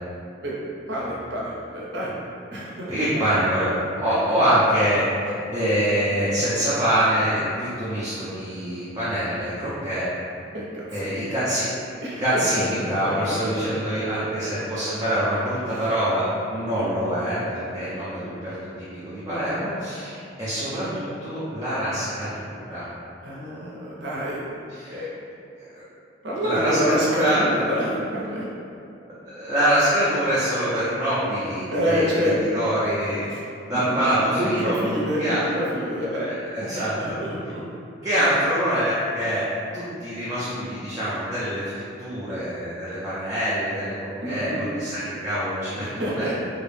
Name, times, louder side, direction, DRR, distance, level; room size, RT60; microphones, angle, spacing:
voice 1, 0.9-2.1 2.5-3.3 10.5-11.3 12.0-13.1 23.2-24.5 24.9-25.1 26.2-28.4 31.7-32.6 33.3-33.4 33.7-34.1 34.4-36.3 36.7-37.6 44.2-44.7 45.8-46.4, equal, 65° right, -6 dB, 0.6 m, -27 dB
voice 2, 2.9-5.0 5.5-10.1 10.9-11.7 12.2-16.2 16.5-22.9 24.7-25.0 25.6-25.8 26.4-27.5 29.2-32.1 32.5-33.3 33.6-34.8 35.2-35.4 36.3-37.2 38.0-39.4 39.7-46.3, equal, 20° right, -12 dB, 0.4 m, -25 dB
2.4 x 2.0 x 3.1 m, 2.6 s
head